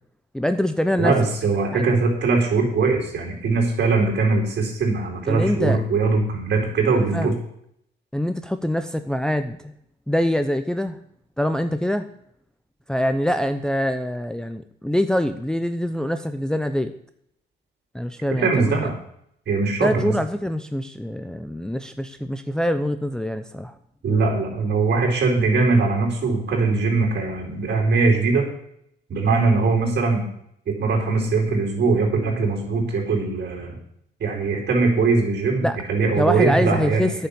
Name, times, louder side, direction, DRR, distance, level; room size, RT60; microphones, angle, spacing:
voice 1, 0.3-1.1 1.7-1.8 5.3-5.8 6.9-7.4 8.1-9.7 10.1-11.0 11.4-12.1 12.9-16.9 17.9-18.9 19.8-23.7 35.6-35.8 36.2-37.3, equal, 5° left, 8 dB, 0.7 m, -24 dB
voice 2, 1.0-7.3 18.4-18.9 19.5-20.1 24.0-28.5 29.1-30.3 30.7-33.8 34.2-37.1, right 4 dB, 55° right, 1 dB, 4.5 m, -21 dB
9.2 x 6.8 x 8.7 m, 0.72 s
cardioid pair, 90°, 20 cm